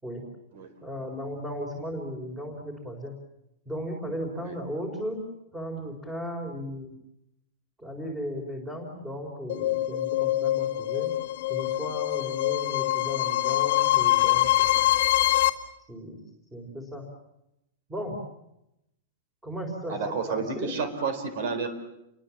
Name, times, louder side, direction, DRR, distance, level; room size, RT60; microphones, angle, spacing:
voice 1, 0.8-3.1 3.7-5.2 5.5-6.9 7.8-11.1 11.5-14.9 15.9-16.2 16.5-17.0 17.9-18.2 19.4-20.7, equal, 5° right, 0 dB, 4.2 m, -36 dB
sound 1, 9.5-15.5, left 15 dB, 50° left, 1.8 m, -24 dB
voice 2, 19.9-21.7, right 5 dB, 50° right, 10 dB, 4.1 m, -30 dB
29.5 x 23.5 x 7.4 m, 0.85 s
supercardioid pair, 175°, 0 cm